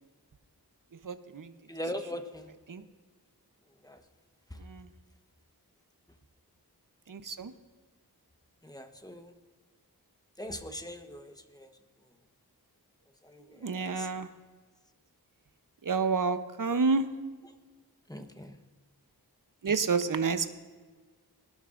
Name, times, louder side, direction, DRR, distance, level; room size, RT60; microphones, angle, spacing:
voice 1, 1.0-1.5 2.7-2.8 4.6-4.9 7.1-7.5 13.6-14.3 15.8-17.1 19.6-20.5, right 4 dB, 55° right, 10 dB, 0.8 m, -29 dB
voice 2, 1.7-2.5 3.8-4.0 8.6-9.3 10.4-11.7 13.2-14.1 18.1-18.6, equal, 10° left, 6 dB, 1.1 m, -41 dB
21.0 x 12.0 x 2.5 m, 1.4 s
wide cardioid pair, 60°, 38 cm